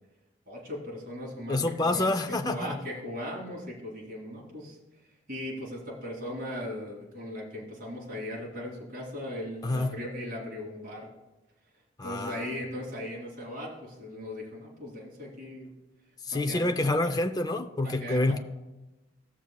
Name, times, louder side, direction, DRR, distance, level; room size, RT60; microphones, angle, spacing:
voice 1, 0.5-4.8 5.3-11.1 12.0-15.7 16.3-17.1 17.8-18.3, left 1 dB, 50° right, 2.7 m, -38 dB
voice 2, 1.5-2.8 9.6-10.0 12.0-12.5 16.3-18.4, left 2 dB, 20° left, 0.5 m, -27 dB
16.0 x 7.2 x 2.3 m
head